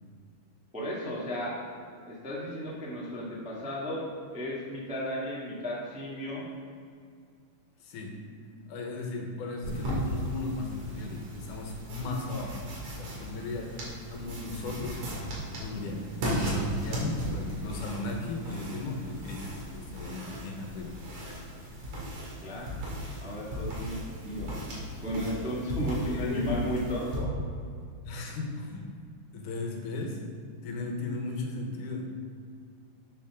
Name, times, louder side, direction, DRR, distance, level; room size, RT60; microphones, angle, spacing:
voice 1, 0.7-1.6 2.0-4.0 4.3-6.4 22.4-22.7 23.2-24.5 25.0-27.3, equal, 5° right, -6 dB, 0.9 m, -34 dB
voice 2, 7.8-8.1 8.7-12.6 13.0-13.8 14.1-15.3 15.6-21.6 26.0-26.6 28.1-28.9 29.3-30.2 30.6-32.1, left 2 dB, 80° left, 1 dB, 2.6 m, -36 dB
sound 1, 9.6-27.2, equal, 65° right, 3.5 m, -36 dB
11.5 x 7.0 x 3.7 m, 2.3 s
omnidirectional pair, 3.6 m